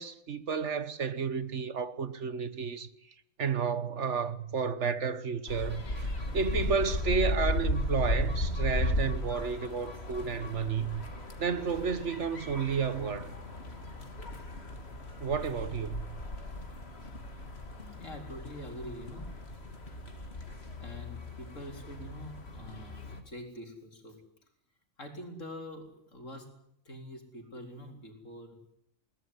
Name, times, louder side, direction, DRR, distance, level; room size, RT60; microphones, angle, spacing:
voice 1, 0.0-2.9 3.4-11.0 11.4-13.3 15.2-16.2, right 6 dB, 60° right, 1.5 m, -32 dB
sound 1, 5.5-23.2, left 1 dB, 50° left, 2.9 m, -36 dB
voice 2, 17.8-19.3 20.8-24.2 25.0-26.5 26.8-28.6, left 1 dB, 65° left, 4.5 m, -45 dB
21.5 x 19.0 x 9.7 m
omnidirectional pair, 1.4 m